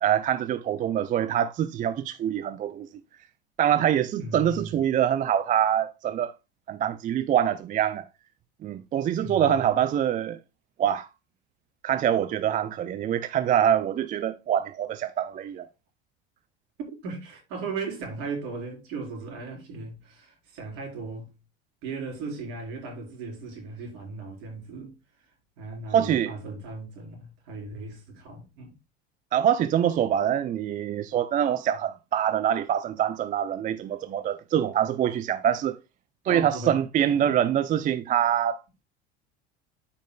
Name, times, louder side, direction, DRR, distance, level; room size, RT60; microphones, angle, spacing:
voice 1, 0.0-2.9 3.6-6.3 6.7-8.0 8.6-10.4 10.8-11.1 11.8-15.7 25.9-26.3 29.3-35.8 36.3-38.6, right 10 dB, 25° right, 0.4 m, -25 dB
voice 2, 4.1-4.8 9.1-9.8 16.9-21.3 21.8-24.9 25.6-28.7 36.2-37.2, right 3 dB, 60° right, 4.1 m, -37 dB
12.5 x 5.1 x 2.2 m
figure-of-eight pair, 75°, 33 cm